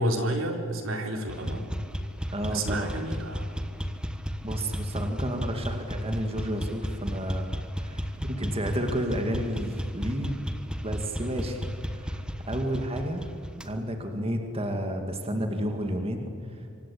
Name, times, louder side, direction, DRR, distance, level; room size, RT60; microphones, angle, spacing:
voice 1, 0.0-1.6 2.4-3.5, right 1 dB, 75° right, 4 dB, 3.9 m, -30 dB
sound 1, 1.3-13.7, equal, 5° right, 1.4 m, -33 dB
voice 2, 2.3-3.0 4.4-10.3 10.8-12.2 12.5-13.3 13.6-16.7, equal, 30° right, 4 dB, 2.2 m, -31 dB
27.0 x 25.0 x 8.6 m, 2.7 s
head